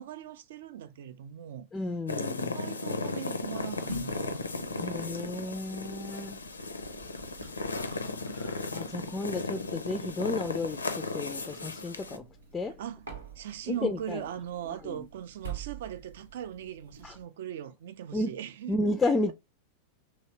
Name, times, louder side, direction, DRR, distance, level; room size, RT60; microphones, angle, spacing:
voice 1, 0.0-1.7 2.4-5.0 12.8-13.0 13.4-18.8, right 10 dB, 55° right, 0.4 m, -40 dB
voice 2, 1.7-2.6 4.8-6.4 8.3-12.3 12.5-12.8 13.7-14.2 14.7-15.1 17.0-17.2 18.1-18.4 18.7-19.3, left 2 dB, 15° left, 0.3 m, -32 dB
sound 1, 2.1-12.2, left 3 dB, 75° left, 0.4 m, -35 dB
sound 2, 3.4-17.2, right 3 dB, 75° right, 0.8 m, -47 dB
3.1 x 2.8 x 2.8 m
figure-of-eight pair, 90°, 0 cm